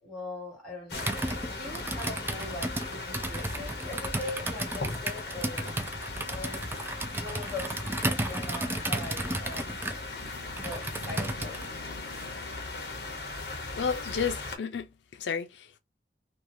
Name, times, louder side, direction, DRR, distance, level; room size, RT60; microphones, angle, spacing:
voice 1, 0.0-5.7 6.3-6.7 7.2-9.9 10.6-11.6, left 2 dB, 5° left, 1.7 m, -41 dB
sound 1, 0.9-14.6, left 3 dB, 65° left, 0.9 m, -38 dB
Computer keyboard, 0.9-11.7, right 1 dB, 15° right, 0.3 m, -34 dB
voice 2, 13.8-14.9 15.2-15.8, left 6 dB, 90° left, 0.5 m, -31 dB
3.0 x 2.3 x 2.6 m
head